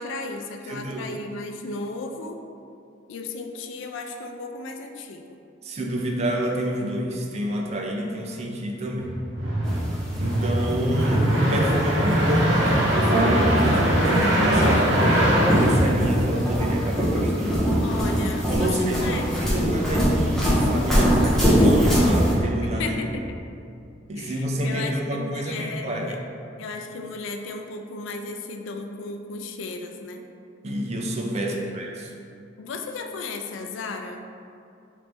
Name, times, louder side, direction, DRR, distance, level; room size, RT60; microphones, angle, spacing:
voice 1, 0.0-2.4 3.1-5.2 17.8-19.8 22.6-23.4 24.2-26.2 26.6-30.2 31.3-31.8 32.6-34.2, left 3 dB, 80° left, 5 dB, 0.4 m, -35 dB
voice 2, 0.7-1.1 5.6-9.1 10.2-17.7 18.5-23.0 24.1-26.1 30.6-32.1, right 1 dB, 35° right, 1 dB, 0.5 m, -28 dB
sound 1, 9.0-16.6, right 1 dB, 70° right, 0.7 m, -22 dB
sound 2, 9.6-22.3, equal, 5° left, 0.9 m, -23 dB
3.9 x 3.2 x 3.4 m, 2.5 s
head